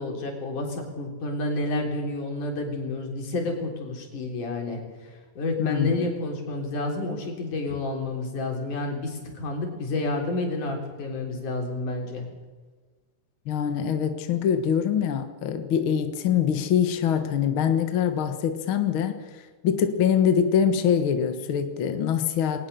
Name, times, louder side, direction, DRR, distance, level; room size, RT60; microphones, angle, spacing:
voice 1, 0.0-12.3, left 2 dB, 80° left, 2 dB, 5.2 m, -30 dB
voice 2, 5.6-6.0 13.4-22.7, left 8 dB, 50° left, 8 dB, 1.8 m, -24 dB
20.5 x 19.0 x 6.8 m, 1.4 s
omnidirectional pair, 3.5 m